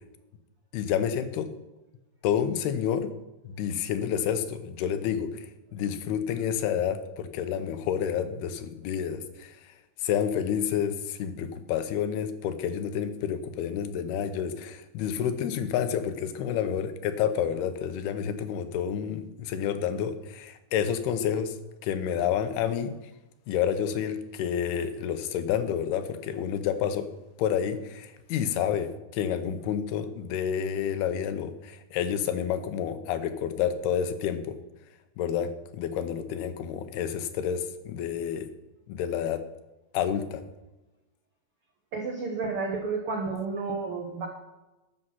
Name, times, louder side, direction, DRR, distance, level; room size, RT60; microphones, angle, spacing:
voice 1, 0.7-1.5 2.2-3.1 3.4-5.5 5.7-9.5 10.0-21.6 21.8-22.9 23.5-27.1 27.4-34.6 35.2-38.5 38.9-39.4 39.9-40.4, left 8 dB, 90° left, 9 dB, 2.9 m, -29 dB
voice 2, 41.9-44.3, right 4 dB, 80° right, 1 dB, 1.2 m, -31 dB
12.5 x 6.5 x 5.8 m, 1.0 s
omnidirectional pair, 4.4 m